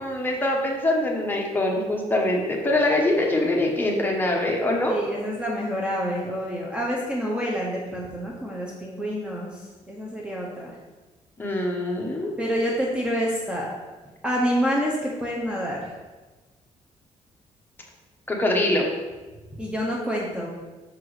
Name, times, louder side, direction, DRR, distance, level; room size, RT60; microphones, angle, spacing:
voice 1, 0.0-5.0 11.4-12.3 18.3-18.9, left 1 dB, 15° left, -1 dB, 1.2 m, -23 dB
voice 2, 3.2-3.7 4.8-10.8 12.4-13.7 14.2-15.9 19.6-20.5, equal, 10° right, -3 dB, 0.9 m, -28 dB
6.1 x 4.5 x 4.9 m, 1.2 s
cardioid pair, 125°, 13 cm